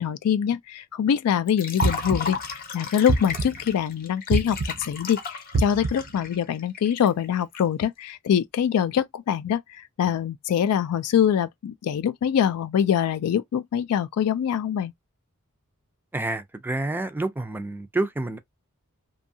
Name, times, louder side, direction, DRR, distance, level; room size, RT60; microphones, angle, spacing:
voice 1, 0.0-14.9, left 9 dB, 75° left, 0.3 m, -24 dB
Liquid, 1.5-7.6, left 5 dB, 40° left, 0.7 m, -34 dB
sound 1, 1.8-2.5 3.1-3.7 4.3-4.9 5.5-6.2, right 3 dB, 75° right, 0.5 m, -26 dB
voice 2, 16.1-18.4, right 2 dB, 10° right, 0.3 m, -28 dB
2.7 x 2.3 x 2.6 m
head